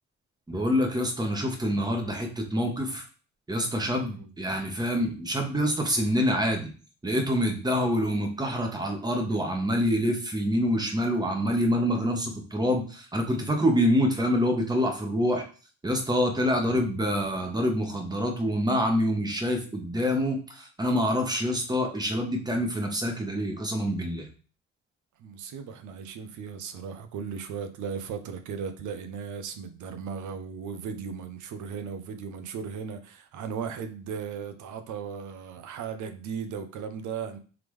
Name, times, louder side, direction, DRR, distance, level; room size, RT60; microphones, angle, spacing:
voice 1, 0.5-3.0 3.5-6.7 7.0-15.4 15.8-24.2, equal, 15° right, 1.0 m, -26 dB
voice 2, 3.9-4.4 25.2-37.4, right 6 dB, 75° right, 0.7 m, -36 dB
3.6 x 3.4 x 3.1 m
cardioid pair, 90°, 30 cm